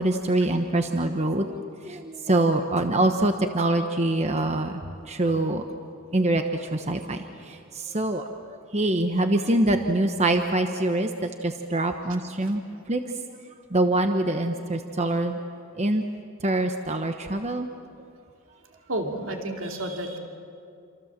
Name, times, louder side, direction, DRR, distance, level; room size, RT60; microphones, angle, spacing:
voice 1, 0.0-4.7 5.1-5.6 6.1-7.2 7.4-12.6 12.9-13.0 13.7-15.4 15.8-16.0 16.4-17.7, right 1 dB, 30° right, 6 dB, 1.1 m, -24 dB
voice 2, 18.9-20.2, right 1 dB, 65° right, 2 dB, 2.7 m, -30 dB
28.0 x 26.5 x 7.5 m, 2.4 s
head